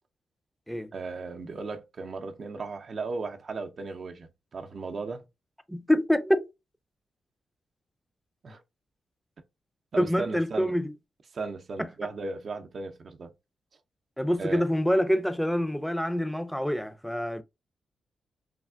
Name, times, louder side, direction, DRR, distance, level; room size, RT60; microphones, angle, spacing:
voice 1, 0.9-5.2 8.4-8.6 9.9-10.8 11.3-13.3 14.4-14.6, right 4 dB, 55° right, 0.5 m, -36 dB
voice 2, 5.7-6.5 10.0-10.9 14.2-17.4, equal, 5° left, 0.4 m, -26 dB
3.3 x 2.4 x 2.3 m
cardioid pair, 65°, 0 cm